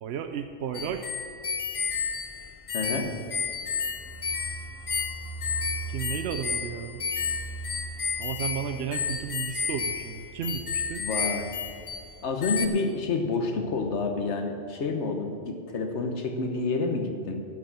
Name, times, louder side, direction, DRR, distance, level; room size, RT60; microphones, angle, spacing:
voice 1, 0.0-1.0 5.9-7.0 8.2-11.0, right 8 dB, 70° right, 7 dB, 0.8 m, -33 dB
sound 1, 0.7-12.1 12.4-12.7, left 6 dB, 45° left, 0.4 m, -32 dB
voice 2, 2.7-3.1 11.0-11.5 12.2-17.4, left 3 dB, 70° left, 5 dB, 1.4 m, -29 dB
sound 2, 3.4-12.9 13.2-13.3 13.5-14.0, right 5 dB, ahead, 2.2 m, -43 dB
12.0 x 6.2 x 7.5 m, 2.3 s
omnidirectional pair, 1.2 m